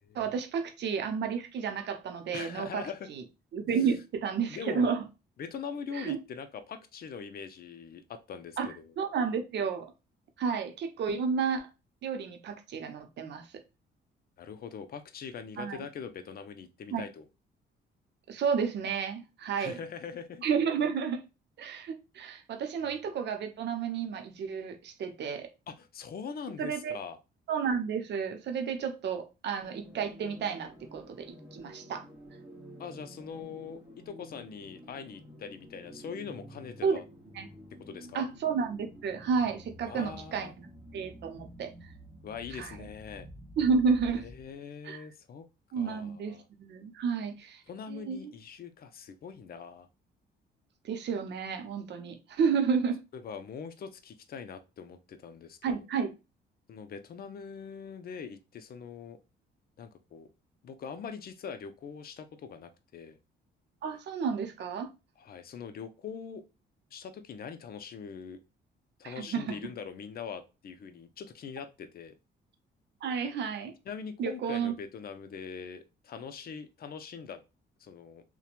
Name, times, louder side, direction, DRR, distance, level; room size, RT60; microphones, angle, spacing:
voice 1, 0.1-2.8 3.1-3.2 3.5-5.0 5.9-6.2 8.6-8.7 9.0-9.9 10.4-11.7 12.0-13.5 15.6-15.8 16.9-17.0 18.3-19.8 20.4-21.2 21.6-25.5 26.6-27.0 27.5-32.1 36.8-37.0 37.3-37.5 38.1-41.7 42.6-42.8 43.6-44.3 44.8-45.1 45.7-47.6 47.9-48.3 50.8-53.0 55.6-56.1 63.8-64.9 69.0-69.6 73.0-73.7 74.2-74.7, right 6 dB, 60° right, 0.6 m, -31 dB
voice 2, 2.3-3.1 4.5-4.9 5.4-8.9 14.4-17.3 19.6-20.4 25.7-27.2 32.8-33.8 34.1-37.0 37.9-38.3 39.8-40.5 42.2-43.3 44.2-45.5 45.8-46.4 47.7-49.9 53.1-55.8 56.7-59.2 59.8-60.3 60.6-63.2 65.2-66.4 66.9-68.4 69.0-72.1 73.9-77.4 77.8-78.2, left 6 dB, 50° left, 0.5 m, -42 dB
sound 1, 29.6-44.5, equal, 5° right, 1.0 m, -50 dB
2.9 x 2.2 x 2.4 m
cardioid pair, 90°, 20 cm